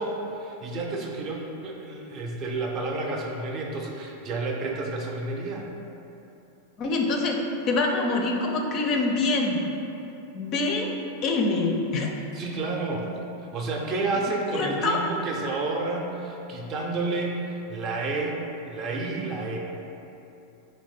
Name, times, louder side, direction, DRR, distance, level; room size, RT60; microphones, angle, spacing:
voice 1, 0.0-5.7 12.3-13.1 13.4-19.6, right 3 dB, 35° right, 0 dB, 0.5 m, -30 dB
voice 2, 6.8-7.4 7.6-9.6 10.3-10.9 11.2-12.1 14.5-15.0, left 3 dB, 35° left, 2 dB, 0.4 m, -25 dB
3.2 x 3.1 x 4.1 m, 2.9 s
figure-of-eight pair, 90°, 0 cm